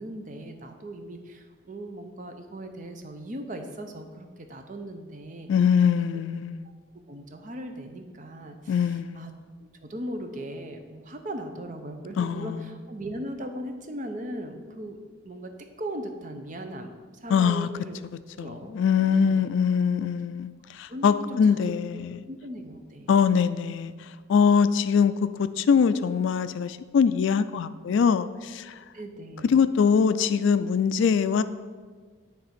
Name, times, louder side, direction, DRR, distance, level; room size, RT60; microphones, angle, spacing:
voice 1, 0.0-5.5 6.1-6.2 6.6-6.7 7.1-9.3 9.6-15.0 15.2-15.5 15.8-18.0 18.4-19.5 20.9-21.6 21.9-23.1 28.9-29.6, right 1 dB, 40° right, 5 dB, 0.6 m, -38 dB
voice 2, 5.5-6.7 8.7-9.2 12.2-12.6 17.3-17.7 18.4-22.2 23.1-23.9 24.3-25.1 25.4-28.8 29.5-31.4, left 6 dB, 65° left, 13 dB, 0.3 m, -23 dB
9.5 x 3.4 x 5.8 m, 1.5 s
head